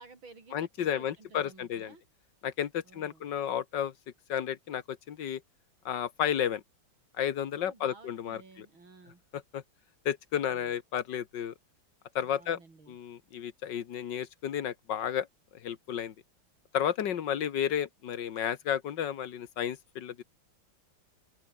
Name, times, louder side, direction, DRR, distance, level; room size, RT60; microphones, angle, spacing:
voice 1, 0.0-2.0 2.8-3.3 7.5-9.2 10.5-10.8 12.2-13.0, right 3 dB, 85° right, 5.5 m, -54 dB
voice 2, 0.5-1.9 2.4-3.9 4.3-5.4 5.9-6.6 7.2-8.7 9.3-9.6 10.1-11.5 12.2-12.6 12.9-15.3 15.5-16.1 16.7-20.2, left 9 dB, 65° left, 1.9 m, -32 dB
open air
omnidirectional pair, 2.1 m